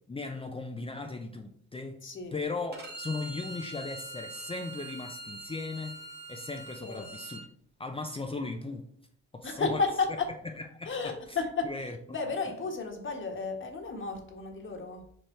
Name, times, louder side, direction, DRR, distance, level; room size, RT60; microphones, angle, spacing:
voice 1, 0.1-2.0 2.3-5.9 6.3-7.5 7.8-8.9 9.3-9.8 10.6-11.4 11.6-12.0, left 3 dB, 20° left, 4 dB, 0.6 m, -37 dB
voice 2, 2.0-2.4 6.8-7.0 9.4-10.3 10.8-11.7 12.1-15.0, left 4 dB, 40° left, 3 dB, 1.4 m, -32 dB
Bowed string instrument, 2.7-7.4, right 2 dB, 35° right, 1.9 m, -43 dB
5.0 x 4.7 x 4.4 m, 0.66 s
cardioid pair, 90°, 30 cm